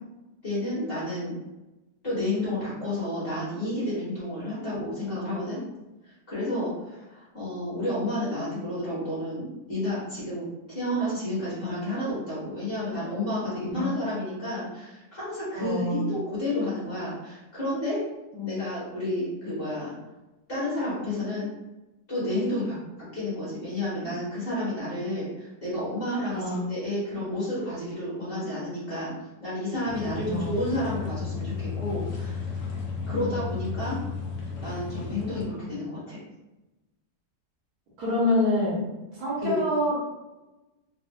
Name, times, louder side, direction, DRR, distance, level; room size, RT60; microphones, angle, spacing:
voice 1, 0.4-1.3 2.0-5.6 6.3-18.0 18.4-19.9 20.5-21.5 22.1-29.1 29.4-32.4 33.1-34.0 34.6-36.2 39.4-39.6, left 1 dB, 35° left, -10 dB, 1.4 m, -31 dB
voice 2, 15.5-16.1 18.3-18.6 26.3-26.6 30.2-30.5 33.0-33.3 38.0-38.8 39.1-39.9, left 1 dB, 60° right, -7 dB, 1.4 m, -27 dB
sound 1, 29.9-35.4, left 5 dB, 65° left, 0.7 m, -34 dB
4.1 x 2.3 x 2.3 m, 1.0 s
omnidirectional pair, 2.0 m